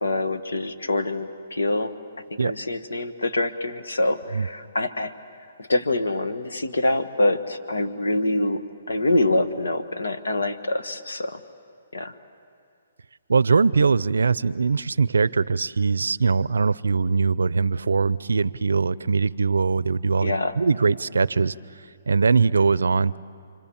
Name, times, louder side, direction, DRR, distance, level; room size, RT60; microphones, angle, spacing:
voice 1, 0.0-1.9 2.3-5.1 5.6-11.4 11.9-12.1 20.2-20.5, left 2 dB, 90° left, 8 dB, 1.5 m, -25 dB
voice 2, 13.3-21.5 22.1-23.2, right 4 dB, 85° right, 19 dB, 0.5 m, -21 dB
29.0 x 24.5 x 7.2 m, 2.3 s
hypercardioid pair, 145°, 0 cm